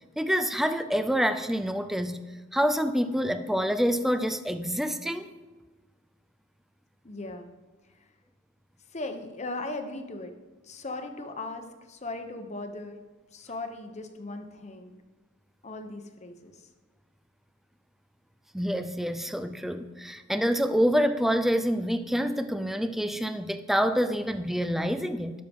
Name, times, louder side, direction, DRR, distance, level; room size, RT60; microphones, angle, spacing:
voice 1, 0.2-2.2 2.5-5.3 18.5-25.3, equal, ahead, 9 dB, 0.5 m, -27 dB
voice 2, 7.0-7.5 8.9-10.3 10.6-13.0 13.3-15.0 15.6-16.7, left 2 dB, 35° left, 6 dB, 1.1 m, -38 dB
20.0 x 6.6 x 3.7 m, 1.3 s
head